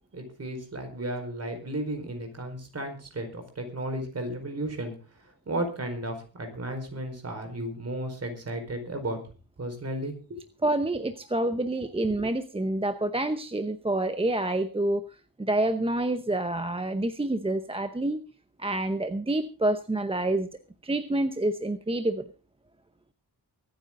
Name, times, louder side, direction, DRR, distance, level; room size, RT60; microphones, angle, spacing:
voice 1, 0.1-9.2 9.6-10.4, right 1 dB, 40° right, 5 dB, 4.7 m, -34 dB
voice 2, 10.6-15.0 15.4-18.2 18.6-20.5 20.8-22.3, right 1 dB, 15° right, 9 dB, 0.8 m, -27 dB
24.0 x 9.4 x 3.8 m, 0.34 s
wide cardioid pair, 165°, 38 cm